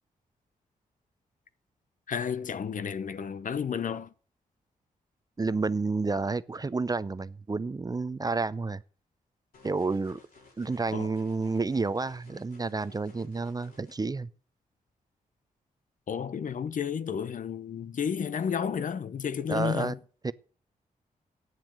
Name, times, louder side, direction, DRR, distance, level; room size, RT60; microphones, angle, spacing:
voice 1, 2.1-4.1 10.9-11.1 16.1-20.0, left 7 dB, 60° left, 0.8 m, -32 dB
voice 2, 5.4-8.8 9.6-10.2 10.6-14.3 19.5-19.9 20.2-20.3, right 3 dB, 25° right, 0.6 m, -30 dB
sound 1, 9.5-13.9, left 3 dB, 75° left, 5.3 m, -57 dB
9.2 x 7.3 x 9.0 m
cardioid pair, 60°, 15 cm